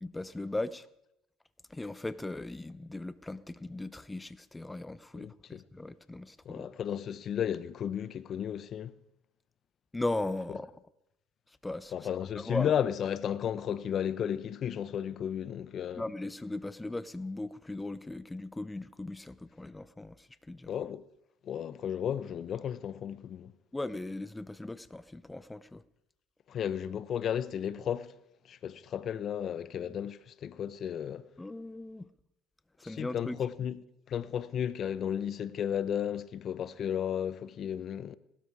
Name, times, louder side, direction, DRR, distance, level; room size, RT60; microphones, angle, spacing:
voice 1, 0.0-0.9 1.7-6.7 9.9-10.7 11.6-11.9 12.3-12.7 16.0-20.7 23.7-25.8 31.4-32.1 32.8-33.4, left 2 dB, 10° left, 0.8 m, -38 dB
voice 2, 5.1-5.6 6.4-8.9 11.9-16.1 20.7-21.1 21.4-23.5 26.5-28.1 28.4-31.2 32.8-33.8 34.1-38.2, left 9 dB, 50° left, 0.8 m, -34 dB
18.0 x 13.0 x 4.9 m
supercardioid pair, 80°, 0 cm